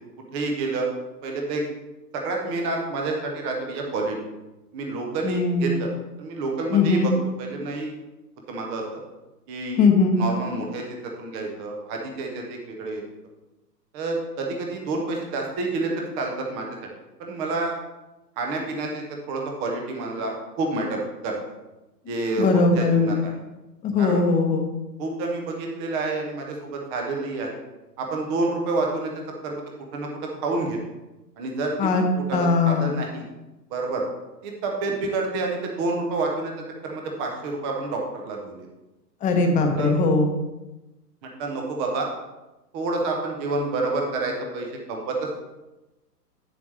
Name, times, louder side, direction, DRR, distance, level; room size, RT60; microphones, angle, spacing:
voice 1, 0.3-0.9 1.2-1.6 2.1-4.2 4.7-5.9 6.2-7.1 7.4-7.9 8.5-9.0 9.5-9.8 10.1-13.0 13.9-16.7 17.2-17.7 18.4-21.4 22.1-23.3 24.0-24.2 25.0-27.6 28.0-29.1 29.4-29.6 29.9-30.1 30.4-30.8 31.4-31.9 32.2-33.3 33.7-34.0 34.4-36.5 36.8-38.7 39.5-39.9 41.4-42.1 42.7-45.4, right 3 dB, 10° right, 1 dB, 0.4 m, -28 dB
voice 2, 5.2-5.8 6.7-7.1 9.8-10.2 22.4-23.1 23.8-24.7 31.8-32.0 32.3-32.9 39.2-40.3, left 4 dB, 15° left, 4 dB, 0.8 m, -20 dB
8.4 x 7.3 x 3.2 m, 1.0 s
hypercardioid pair, 125°, 50 cm